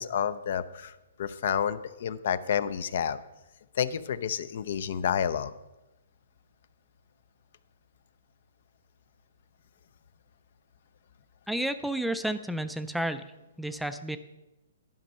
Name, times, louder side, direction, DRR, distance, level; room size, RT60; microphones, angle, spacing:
voice 1, 0.0-3.2 3.7-5.5, left 8 dB, 60° left, 16 dB, 0.4 m, -30 dB
voice 2, 11.5-13.2 13.6-14.2, right 1 dB, ahead, 10 dB, 0.3 m, -31 dB
11.5 x 5.3 x 5.3 m, 1.0 s
hypercardioid pair, 145°, 0 cm